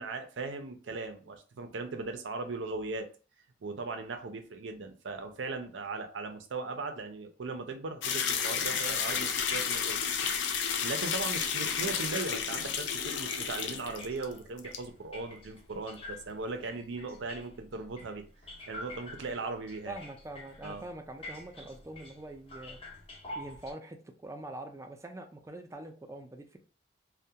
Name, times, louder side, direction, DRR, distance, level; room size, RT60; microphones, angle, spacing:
voice 1, 0.0-3.1 3.6-10.0 10.8-18.2 18.7-20.0 20.6-20.8, right 3 dB, 80° right, 6 dB, 0.5 m, -38 dB
sound 1, 8.0-14.3 14.6-14.8, left 7 dB, 70° left, 0.4 m, -31 dB
sound 2, 8.5-23.7, left 1 dB, 30° left, 0.6 m, -49 dB
voice 2, 19.9-22.8 23.3-26.6, right 1 dB, 15° right, 5 dB, 0.3 m, -44 dB
2.3 x 2.1 x 2.7 m, 0.37 s
head